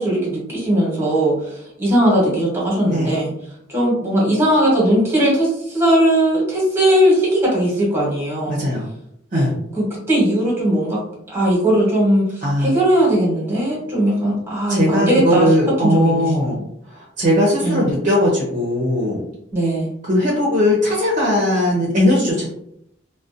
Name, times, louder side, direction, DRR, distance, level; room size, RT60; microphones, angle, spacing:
voice 1, 0.0-3.3 3.7-8.6 9.3-11.0 11.3-15.5 15.8-16.5 17.6-17.9 19.5-19.9, right 1 dB, 10° right, -4 dB, 0.9 m, -18 dB
voice 2, 8.5-8.9 9.3-9.5 12.4-12.8 14.7-16.6 16.9-19.2 20.0-22.5, left 1 dB, 40° right, -3 dB, 0.5 m, -18 dB
2.5 x 2.1 x 2.4 m, 0.74 s
head